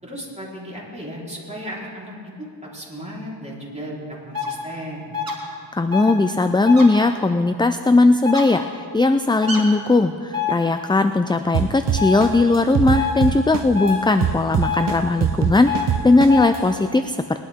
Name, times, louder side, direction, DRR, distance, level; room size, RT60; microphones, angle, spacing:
voice 1, 0.0-5.1, equal, 15° right, -6 dB, 4.0 m, -35 dB
sound 1, 4.3-4.5 5.1-5.3 5.9-6.1 6.7-6.9 8.3-8.4 9.4-9.6 10.3-10.5 12.0-12.2 12.9-13.1 13.7-14.0 14.6-14.8 15.7-15.9 16.3-16.5, left 6 dB, 50° right, 2.6 m, -25 dB
voice 2, 5.7-17.5, left 3 dB, 10° left, 9 dB, 0.4 m, -18 dB
sound 2, 11.5-13.9 14.2-16.6, right 9 dB, 65° right, 0.8 m, -22 dB
21.0 x 11.0 x 3.6 m, 2.3 s
cardioid pair, 50°, 44 cm